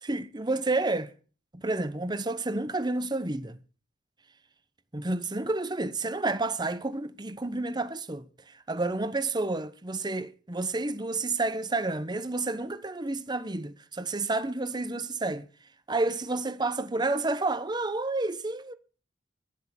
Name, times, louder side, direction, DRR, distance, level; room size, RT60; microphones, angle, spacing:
voice 1, 0.0-1.1 1.5-3.6 4.9-8.2 8.7-15.5 15.9-18.7, right 2 dB, 25° right, 1.0 m, -30 dB
12.0 x 10.5 x 7.4 m
head